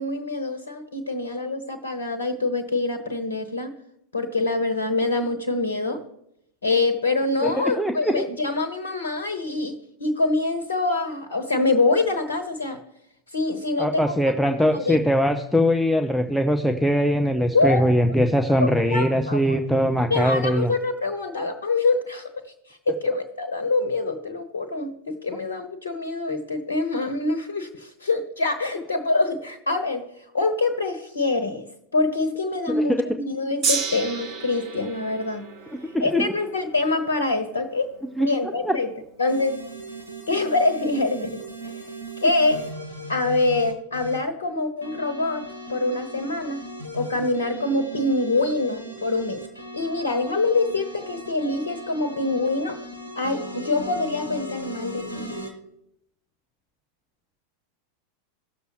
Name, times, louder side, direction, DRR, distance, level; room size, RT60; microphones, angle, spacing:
voice 1, 0.0-3.7 4.1-6.0 6.6-12.8 13.3-14.1 14.4-15.0 17.5-17.9 18.5-19.6 20.1-22.3 22.7-30.1 30.3-31.6 31.9-35.5 36.0-37.9 38.2-38.9 39.2-39.6 40.3-42.6 43.1-45.4 45.7-46.6 46.9-49.4 49.7-52.8 53.1-55.4, left 3 dB, 75° left, 8 dB, 1.1 m, -25 dB
voice 2, 7.8-8.2 13.8-20.7 32.7-33.1 35.9-36.3 38.2-38.3 38.6-38.7, equal, ahead, 4 dB, 0.7 m, -21 dB
Gong, 33.6-40.0 40.8-40.9, right 5 dB, 40° right, 1.4 m, -33 dB
sound 1, 39.3-44.2 44.8-55.5, right 1 dB, 85° right, 1.8 m, -37 dB
16.5 x 6.8 x 3.1 m, 0.79 s
figure-of-eight pair, 90°, 0 cm